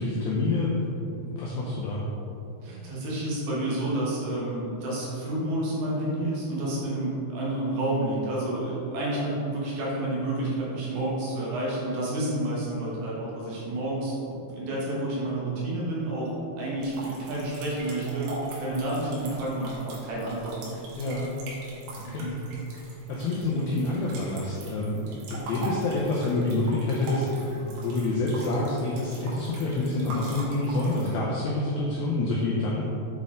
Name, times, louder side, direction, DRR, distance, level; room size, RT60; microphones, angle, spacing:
voice 1, 0.0-2.0 21.0-21.3 22.1-22.3 22.8-32.8, left 2 dB, 80° left, -5 dB, 2.1 m, -27 dB
voice 2, 2.6-16.3 16.6-18.3 18.6-20.8 22.0-22.4, right 1 dB, 70° right, -6 dB, 2.7 m, -30 dB
sound 1, 16.8-31.2, right 2 dB, 85° right, 3.6 m, -42 dB
7.9 x 4.2 x 3.7 m, 2.9 s
omnidirectional pair, 5.1 m